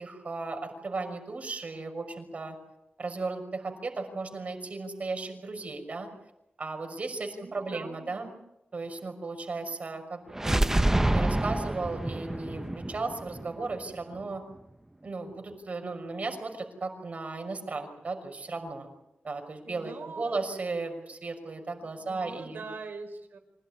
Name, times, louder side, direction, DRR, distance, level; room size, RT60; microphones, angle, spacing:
voice 1, 0.0-2.6 3.0-6.1 6.6-8.3 8.7-10.6 11.1-14.4 15.0-18.9 19.2-22.6, right 3 dB, 45° right, 5 dB, 5.9 m, -35 dB
voice 2, 7.2-8.3 19.6-20.4 21.9-23.4, right 4 dB, 75° right, 6 dB, 5.0 m, -43 dB
sound 1, 10.3-14.2, right 1 dB, 15° right, 0.9 m, -27 dB
26.0 x 17.0 x 9.9 m, 0.87 s
wide cardioid pair, 125°, 3 cm